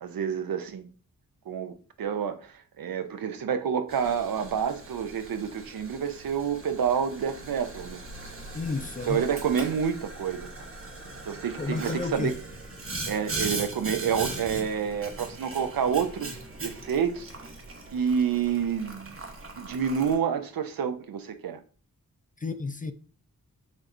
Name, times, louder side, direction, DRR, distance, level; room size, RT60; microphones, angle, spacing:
voice 1, 0.0-0.9 1.5-8.0 9.1-10.5 11.2-12.3 13.1-17.3 17.9-19.2 19.6-21.6, right 7 dB, 75° right, 0.6 m, -28 dB
Boiling, 3.9-20.2, right 2 dB, 40° right, 1.0 m, -39 dB
voice 2, 8.5-9.3 11.6-12.3 22.4-22.9, left 3 dB, 25° left, 0.4 m, -31 dB
6.3 x 3.0 x 2.5 m
wide cardioid pair, 80°, 35 cm